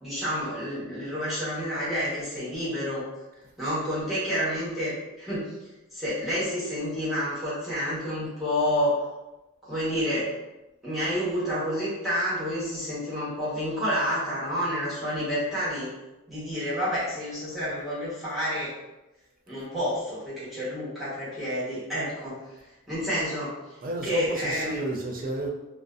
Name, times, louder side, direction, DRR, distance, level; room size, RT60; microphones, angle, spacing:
voice 1, 0.0-3.0 3.6-5.5 5.9-9.0 9.6-10.3 10.8-15.9 16.3-18.7 19.5-22.4 22.9-23.5 24.0-24.8, equal, ahead, -12 dB, 1.0 m, -29 dB
voice 2, 23.8-25.5, right 2 dB, 40° right, 0 dB, 0.4 m, -32 dB
2.5 x 2.1 x 2.4 m, 1.0 s
head